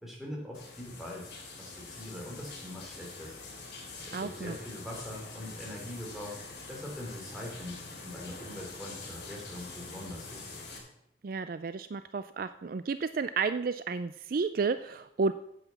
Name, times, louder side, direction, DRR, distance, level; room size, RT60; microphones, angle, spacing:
voice 1, 0.0-1.3 1.6-3.4 4.1-6.3 6.7-10.4, left 1 dB, ahead, -2 dB, 3.4 m, -42 dB
sound 1, 0.5-10.8, left 3 dB, 60° left, 3.7 m, -45 dB
voice 2, 4.1-4.6 11.2-15.3, right 4 dB, 50° right, 12 dB, 0.4 m, -32 dB
9.2 x 7.9 x 7.0 m, 0.76 s
head